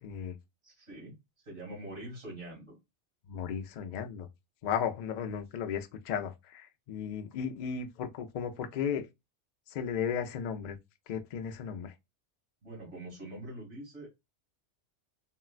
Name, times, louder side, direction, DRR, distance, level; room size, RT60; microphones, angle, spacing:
voice 1, 0.0-0.3 3.3-4.3 4.6-9.1 9.7-10.8 11.1-11.9, left 7 dB, 55° left, 0.5 m, -35 dB
voice 2, 0.6-1.2 1.4-2.8 12.6-14.1, right 1 dB, 90° right, 2.1 m, -44 dB
3.7 x 2.1 x 2.3 m
omnidirectional pair, 1.2 m